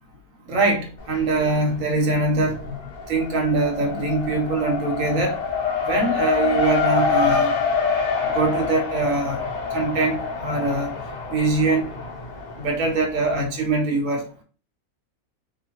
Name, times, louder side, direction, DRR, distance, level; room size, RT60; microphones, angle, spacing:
voice 1, 0.5-2.8 3.1-5.4 5.8-7.5 8.3-9.4 9.7-10.9 11.3-11.9 12.6-14.3, right 3 dB, 65° right, 1 dB, 1.2 m, -23 dB
Race car auto racing, 1.0-1.7 2.0-13.4, left 5 dB, 65° left, 0.4 m, -26 dB
2.8 x 2.2 x 2.9 m, 0.36 s
omnidirectional pair, 1.6 m